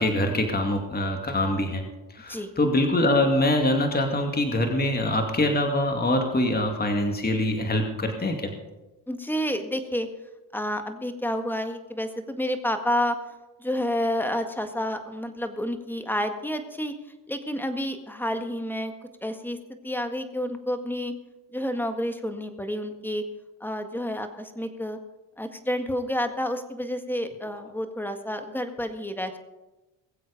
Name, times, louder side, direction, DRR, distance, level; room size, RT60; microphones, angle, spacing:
voice 1, 0.0-1.8 2.1-8.5, left 1 dB, 20° left, 4 dB, 2.4 m, -24 dB
voice 2, 9.1-10.1 10.5-13.2 13.6-16.9 17.3-18.9 19.2-19.6 19.8-21.1 21.5-23.2 23.6-25.0 25.4-29.4, equal, 5° left, 7 dB, 1.8 m, -29 dB
21.5 x 7.8 x 5.2 m, 1.1 s
supercardioid pair, 80°, 43 cm